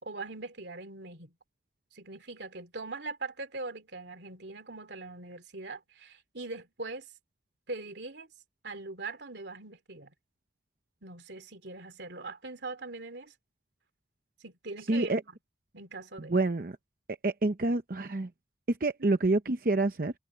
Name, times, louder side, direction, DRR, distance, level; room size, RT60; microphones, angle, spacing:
voice 1, 0.0-1.3 1.9-7.1 7.7-8.3 8.6-10.1 11.0-13.3 14.4-15.4 15.7-16.4, right 3 dB, 85° right, 2.6 m, -41 dB
voice 2, 14.9-15.2 16.2-16.8 17.2-18.3 18.7-20.1, right 2 dB, 50° right, 0.8 m, -27 dB
head